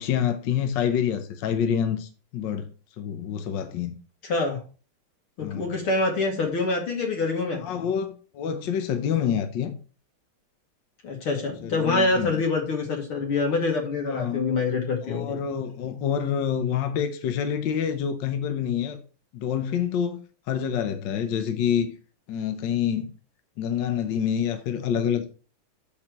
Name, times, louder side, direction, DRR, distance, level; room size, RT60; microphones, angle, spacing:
voice 1, 0.0-2.7 3.0-4.0 5.4-5.8 7.6-9.7 11.6-12.3 14.1-14.5 15.0-19.0 19.3-20.2 20.5-21.9 22.3-23.1 23.6-25.3, left 8 dB, 65° left, 1.4 m, -27 dB
voice 2, 4.2-4.6 5.4-7.9 11.0-15.4, left 3 dB, 85° left, 3.0 m, -26 dB
6.5 x 5.9 x 5.2 m
omnidirectional pair, 2.3 m